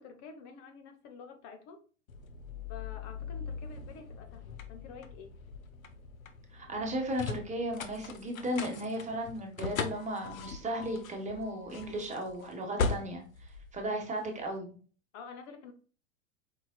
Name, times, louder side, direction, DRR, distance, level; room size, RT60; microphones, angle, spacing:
voice 1, 0.0-1.8 2.7-5.4 15.1-15.7, left 5 dB, 45° left, 6 dB, 0.9 m, -49 dB
sound 1, 2.1-14.4, left 5 dB, 90° left, 0.7 m, -40 dB
voice 2, 6.5-13.2 13.7-14.8, right 1 dB, 20° right, 3 dB, 1.3 m, -35 dB
4.9 x 4.0 x 2.2 m, 0.39 s
hypercardioid pair, 105°, 40 cm